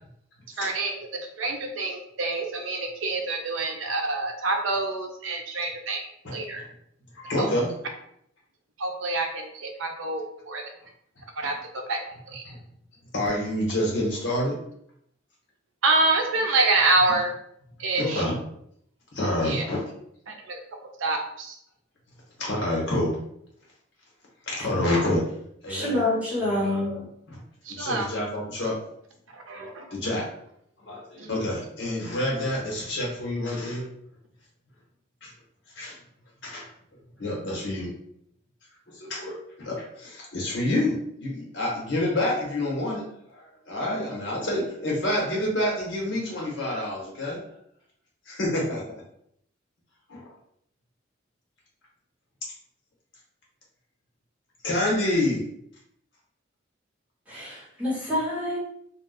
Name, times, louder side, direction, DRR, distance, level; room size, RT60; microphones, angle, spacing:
voice 1, 0.6-0.9 1.4-6.6 7.4-7.5 8.8-10.7 11.4-11.6 11.9-12.0 12.3-12.4 15.8-17.3 17.8-18.2 19.4-19.6 20.3-20.6 21.0-21.6 27.6-28.1 29.3-29.8 31.2-31.4, right 3 dB, 80° right, 3 dB, 0.6 m, -26 dB
voice 2, 7.1-7.7 12.4-12.6 13.1-14.6 18.0-18.3 19.1-19.8 22.4-23.2 24.5-25.2 25.6-26.0 26.4-27.0 27.3-27.4 27.7-28.8 29.5-30.2 30.8-33.9 35.2-35.3 35.7-36.0 36.4-36.7 37.2-37.9 38.9-43.1 43.3-47.4 48.3-48.8 50.1-50.3 54.6-55.5, left 1 dB, 65° left, -3 dB, 1.2 m, -28 dB
voice 3, 25.7-27.0 57.3-58.6, left 1 dB, 5° right, -7 dB, 1.1 m, -27 dB
2.4 x 2.3 x 3.8 m, 0.71 s
head